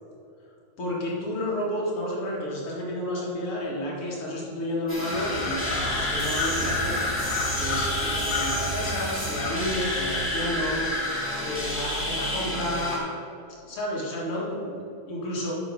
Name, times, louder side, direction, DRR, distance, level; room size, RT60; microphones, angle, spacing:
voice 1, 0.8-7.0 7.6-10.9 11.4-13.2 13.6-14.8 15.1-15.6, left 1 dB, 40° left, -4 dB, 2.2 m, -31 dB
sound 1, 4.9-13.0, equal, 5° left, 1.0 m, -30 dB
sound 2, 5.1-10.1, left 3 dB, 70° left, 3.0 m, -31 dB
12.0 x 5.1 x 6.3 m, 2.8 s
omnidirectional pair, 4.7 m